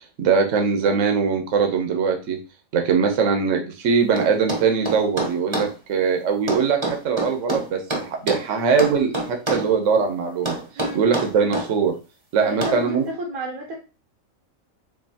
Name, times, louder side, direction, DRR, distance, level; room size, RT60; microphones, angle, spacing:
voice 1, 0.2-2.4 2.7-10.6 10.9-11.9 12.3-13.0, right 5 dB, 65° right, 3 dB, 1.2 m, -21 dB
sound 1, 4.2-5.7 6.5-8.5 8.8-9.7 10.4-11.7 12.6-12.8, right 2 dB, 25° right, 0.9 m, -26 dB
voice 2, 10.8-11.1 12.4-13.8, right 2 dB, 90° right, -1 dB, 1.5 m, -31 dB
6.8 x 2.8 x 2.8 m, 0.32 s
omnidirectional pair, 1.4 m